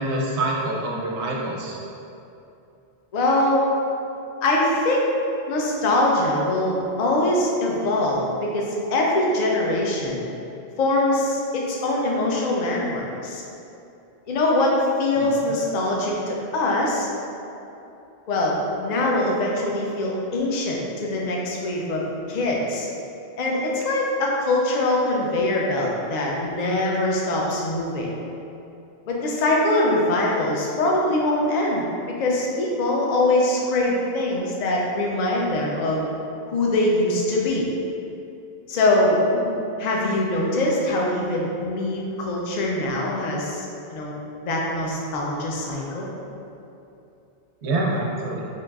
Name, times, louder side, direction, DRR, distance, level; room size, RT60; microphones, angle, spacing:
voice 1, 0.0-1.8 15.2-15.3 39.3-39.7 47.6-48.5, right 2 dB, 80° right, -2 dB, 0.9 m, -26 dB
voice 2, 3.1-3.7 4.4-5.1 5.5-10.2 10.8-13.4 14.3-17.1 18.3-22.9 23.4-28.1 29.1-36.0 36.5-37.7 38.7-39.2 39.8-44.1 44.4-46.1, left 1 dB, 55° left, -2 dB, 0.5 m, -23 dB
4.5 x 2.5 x 2.3 m, 2.8 s
omnidirectional pair, 1.1 m